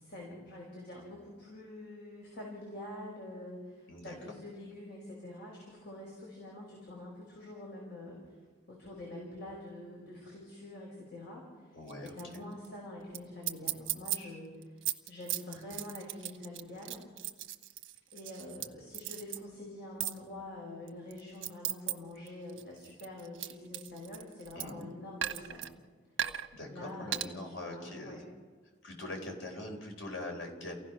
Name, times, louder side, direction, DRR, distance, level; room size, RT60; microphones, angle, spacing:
voice 1, 0.0-8.2 8.7-14.6 15.1-17.1 18.1-25.7 26.7-27.3 27.6-28.2, left 1 dB, 60° left, -2 dB, 5.1 m, -46 dB
voice 2, 11.7-12.4 24.5-24.9 26.5-28.2 28.8-30.8, left 1 dB, 75° left, 2 dB, 4.3 m, -43 dB
sound 1, 11.9-12.4 12.6-12.7 13.1-13.2 13.4-14.2 14.6-18.7 18.9-19.4 20.0-20.2 20.9-21.9 22.3-24.8 25.2-25.7 26.2-26.5 27.1-27.3, right 12 dB, 80° right, 1.1 m, -36 dB
29.5 x 16.0 x 6.1 m, 1.4 s
head